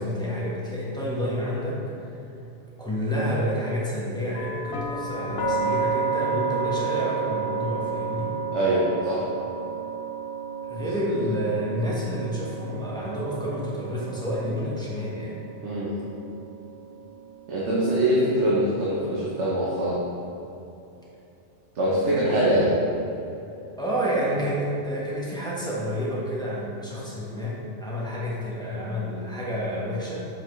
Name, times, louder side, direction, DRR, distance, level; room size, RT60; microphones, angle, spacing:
voice 1, 0.0-2.2 2.8-8.3 10.6-15.4 23.8-30.2, equal, 5° left, -7 dB, 1.2 m, -29 dB
sound 1, 4.3-18.2, right 5 dB, 60° left, 0.9 m, -32 dB
voice 2, 8.5-9.3 10.8-10.9 15.6-16.0 17.5-20.0 21.7-22.7, right 1 dB, 75° right, -7 dB, 1.3 m, -23 dB
7.0 x 5.7 x 3.2 m, 2.9 s
omnidirectional pair, 1.2 m